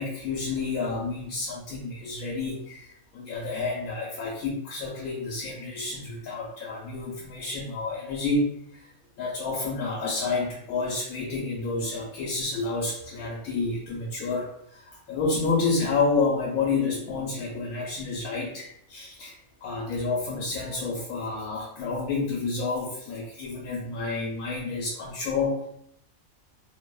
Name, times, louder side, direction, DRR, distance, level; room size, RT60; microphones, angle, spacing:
voice 1, 0.0-8.9 9.2-19.4 19.6-25.7, left 3 dB, 90° left, -4 dB, 1.1 m, -29 dB
2.7 x 2.0 x 2.2 m, 0.72 s
omnidirectional pair, 1.5 m